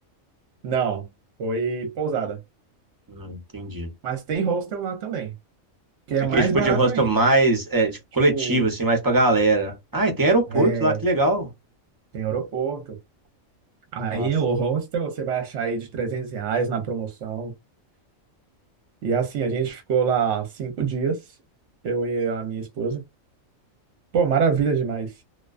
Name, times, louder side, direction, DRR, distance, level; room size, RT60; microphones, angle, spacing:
voice 1, 0.6-1.1 1.4-2.4 4.0-5.3 6.1-7.2 8.3-8.6 10.5-11.0 12.1-13.0 13.9-17.5 19.0-21.2 21.8-23.0 24.1-25.1, right 6 dB, 65° right, 0.9 m, -25 dB
voice 2, 3.1-3.9 6.3-11.5 14.1-14.3, right 2 dB, 25° right, 0.5 m, -21 dB
2.3 x 2.2 x 2.4 m
omnidirectional pair, 1.4 m